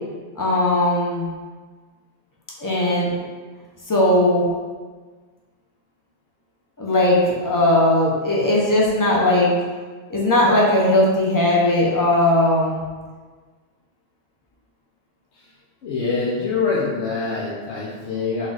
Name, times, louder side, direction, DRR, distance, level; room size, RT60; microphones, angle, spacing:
voice 1, 0.4-1.3 2.6-3.1 3.9-4.4 6.8-9.5 10.1-12.8, left 1 dB, 20° left, -4 dB, 0.6 m, -18 dB
voice 2, 15.8-18.5, left 4 dB, 85° left, -7 dB, 1.0 m, -24 dB
4.2 x 2.3 x 3.9 m, 1.4 s
omnidirectional pair, 1.1 m